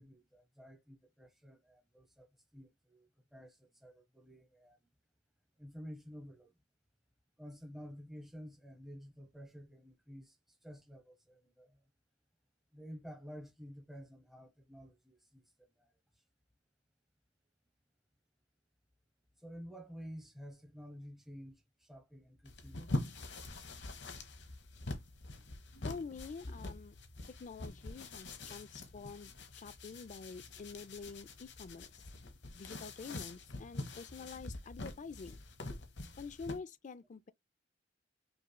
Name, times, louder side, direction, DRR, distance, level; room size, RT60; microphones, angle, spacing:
voice 1, 0.0-4.8 5.6-6.5 7.4-10.4 10.6-11.8 12.7-15.4 15.8-15.9 19.4-23.1, equal, ahead, 0.9 m, -51 dB
sound 1, 22.4-36.6, left 2 dB, 65° left, 0.9 m, -44 dB
voice 2, 25.8-27.0 27.3-32.0 32.5-35.4 36.2-37.3, left 5 dB, 40° left, 0.4 m, -47 dB
5.3 x 3.1 x 2.2 m
head